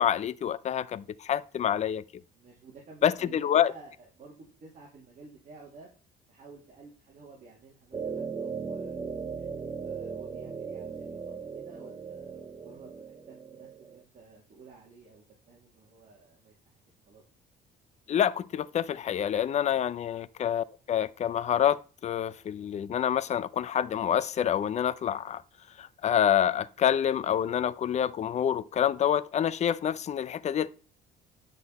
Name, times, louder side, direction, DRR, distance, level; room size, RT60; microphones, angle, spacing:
voice 1, 0.0-2.0 3.0-3.7 18.1-25.4 25.8-30.7, left 9 dB, 40° left, 0.6 m, -27 dB
voice 2, 2.3-5.9 6.3-8.9 9.3-16.8 17.1-17.2 19.6-19.8, right 4 dB, 50° right, 2.8 m, -52 dB
sound 1, 7.9-14.0, right 5 dB, 20° right, 0.7 m, -38 dB
9.8 x 6.2 x 4.2 m
cardioid pair, 110°, 17 cm